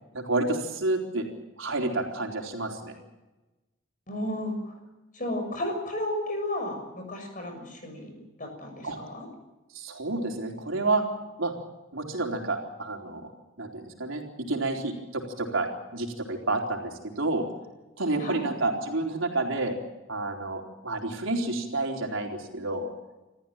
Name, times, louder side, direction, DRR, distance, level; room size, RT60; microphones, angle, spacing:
voice 1, 0.1-1.3 1.6-2.9 8.8-9.0 9.7-11.0 11.4-11.5 11.9-13.2 13.6-17.5 18.0-19.8 20.1-22.9, right 2 dB, 75° right, 2 dB, 4.1 m, -29 dB
voice 2, 4.1-4.8 5.1-9.3 18.2-18.4, left 1 dB, 40° left, 4 dB, 6.7 m, -33 dB
27.5 x 14.5 x 9.0 m, 1.1 s
head